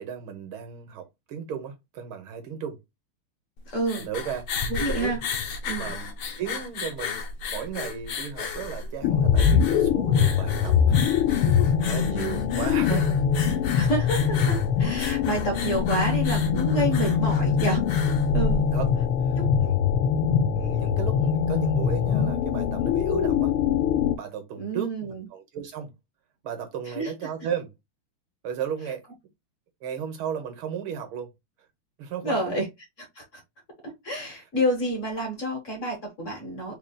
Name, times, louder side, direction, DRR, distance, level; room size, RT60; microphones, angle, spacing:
voice 1, 0.0-2.8 3.9-4.5 4.9-5.1 5.8-11.0 11.3-13.2 16.7-17.0 18.7-18.9 19.2-19.8 20.5-23.5 24.2-25.9 26.4-27.7 28.4-29.0 29.8-31.3 32.0-32.6, right 8 dB, 75° right, 1.8 m, -35 dB
sound 1, 3.6-19.0, left 4 dB, 65° left, 1.3 m, -34 dB
voice 2, 3.7-4.0 4.7-5.2 5.7-5.9 13.8-17.8 18.3-18.7 19.3-19.5 24.6-25.2 26.9-27.1 32.2-32.7 33.1-33.4 33.8-36.8, right 1 dB, 40° left, 1.4 m, -29 dB
sound 2, 9.0-24.2, left 7 dB, 90° left, 1.5 m, -23 dB
4.0 x 3.7 x 2.2 m
omnidirectional pair, 2.3 m